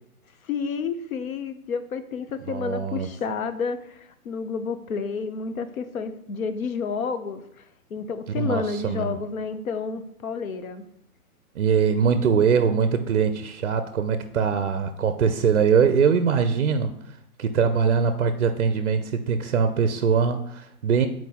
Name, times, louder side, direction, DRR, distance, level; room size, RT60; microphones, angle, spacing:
voice 1, 0.5-7.4 7.9-10.8, left 5 dB, 65° left, 10 dB, 0.8 m, -30 dB
voice 2, 2.5-3.1 8.4-9.2 11.6-16.9 17.4-21.1, right 6 dB, 55° right, 9 dB, 0.5 m, -22 dB
8.1 x 4.4 x 2.8 m, 0.75 s
hypercardioid pair, 170°, 46 cm